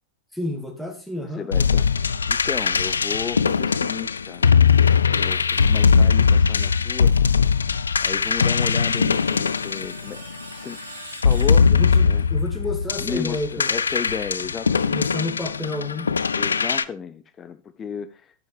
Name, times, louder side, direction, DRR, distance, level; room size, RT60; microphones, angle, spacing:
voice 1, 0.3-1.5 11.7-13.7 14.9-16.1, left 1 dB, ahead, 2.0 m, -30 dB
voice 2, 1.2-1.8 2.3-4.5 5.1-7.1 8.0-10.8 11.2-11.7 12.0-12.2 13.0-15.0 16.3-18.3, left 7 dB, 25° left, 0.5 m, -33 dB
sound 1, 1.5-10.5 11.1-16.8, left 6 dB, 75° left, 0.4 m, -20 dB
Screech, 8.0-12.2, right 1 dB, 85° right, 2.6 m, -43 dB
11.5 x 8.9 x 3.3 m
figure-of-eight pair, 90°, 0 cm